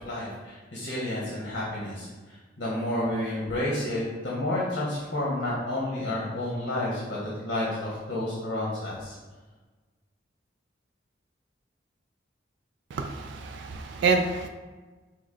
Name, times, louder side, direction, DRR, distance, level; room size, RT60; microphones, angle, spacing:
voice 1, 0.0-2.1 2.6-9.1, left 1 dB, 65° left, -6 dB, 1.0 m, -30 dB
voice 2, 12.9-14.5, right 4 dB, 65° right, 5 dB, 0.3 m, -27 dB
5.9 x 2.0 x 3.8 m, 1.3 s
head